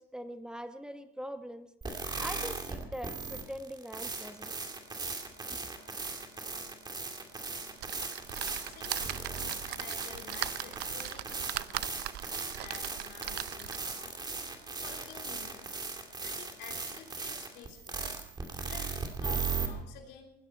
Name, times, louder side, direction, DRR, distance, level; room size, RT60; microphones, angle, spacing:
voice 1, 0.0-1.7 2.2-4.5 5.5-5.6, equal, 5° right, 8 dB, 1.1 m, -42 dB
sound 1, 1.8-19.7, right 4 dB, 25° right, 2.6 m, -38 dB
sound 2, 7.8-14.0 14.6-14.7 14.9-15.0, right 16 dB, 75° right, 0.5 m, -40 dB
voice 2, 8.6-9.3 9.7-11.9 12.6-14.2 14.8-15.8 16.2-18.0 18.7-20.3, left 8 dB, 85° left, 3 dB, 3.4 m, -50 dB
20.0 x 15.5 x 4.4 m, 0.80 s
cardioid pair, 110°, 17 cm